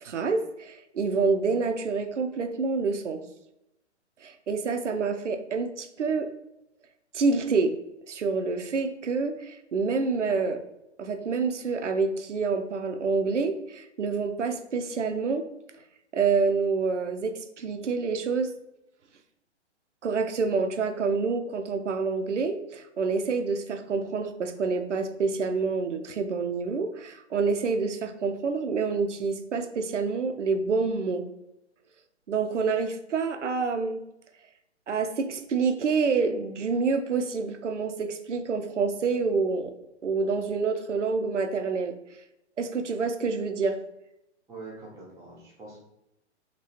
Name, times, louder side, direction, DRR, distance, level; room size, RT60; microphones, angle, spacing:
voice 1, 0.0-3.2 4.2-6.3 7.1-7.7 8.1-10.6 11.0-15.4 16.1-18.5 20.0-31.2 32.3-34.0 34.9-39.7 40.0-41.9 42.6-43.8, right 4 dB, 85° right, 7 dB, 0.5 m, -27 dB
voice 2, 44.5-45.8, right 3 dB, 10° right, -5 dB, 0.7 m, -44 dB
2.9 x 2.9 x 2.8 m, 0.87 s
figure-of-eight pair, 120°, 35 cm